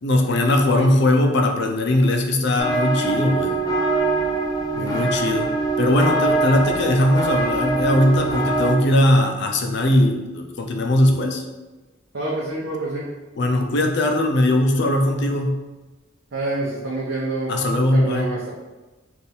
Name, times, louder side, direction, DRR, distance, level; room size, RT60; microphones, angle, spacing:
voice 1, 0.0-3.6 4.7-5.5 5.8-11.4 13.3-15.6 17.5-18.3, left 1 dB, 60° left, 3 dB, 0.6 m, -19 dB
sound 1, 2.6-8.7, right 3 dB, 20° left, 0.6 m, -23 dB
voice 2, 4.7-5.1 12.1-13.1 16.3-17.5 17.9-18.5, right 2 dB, 70° right, -7 dB, 0.8 m, -27 dB
3.5 x 2.6 x 4.3 m, 1.2 s
head